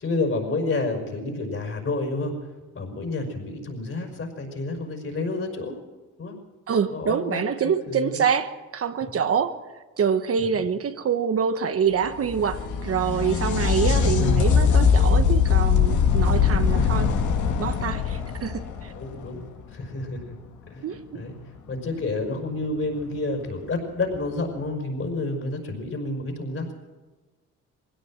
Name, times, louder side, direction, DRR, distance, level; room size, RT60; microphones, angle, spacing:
voice 1, 0.0-2.5 2.7-5.8 6.2-6.4 6.9-8.2 9.0-9.1 15.0-15.1 19.0-19.4 19.7-20.4 20.7-20.9 21.1-21.4 21.7-26.7, left 2 dB, 45° left, 3 dB, 5.5 m, -29 dB
voice 2, 6.7-9.5 10.0-17.2 17.6-18.9 20.8-21.2, right 7 dB, 50° right, 9 dB, 1.2 m, -26 dB
sound 1, 12.0-19.6 23.0-23.1 24.1-24.2, left 6 dB, 75° left, 2.2 m, -21 dB
21.0 x 17.0 x 7.6 m, 1.3 s
cardioid pair, 90°, 30 cm